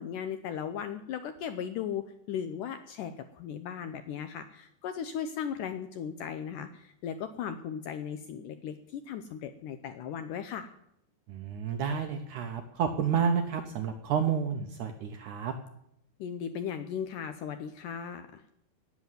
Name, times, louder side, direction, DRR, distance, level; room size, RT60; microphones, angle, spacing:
voice 1, 0.0-10.7 16.2-18.4, left 8 dB, 85° left, 9 dB, 1.8 m, -37 dB
voice 2, 11.3-15.5, right 7 dB, 75° right, 6 dB, 1.8 m, -30 dB
17.5 x 7.3 x 9.3 m, 0.77 s
omnidirectional pair, 4.7 m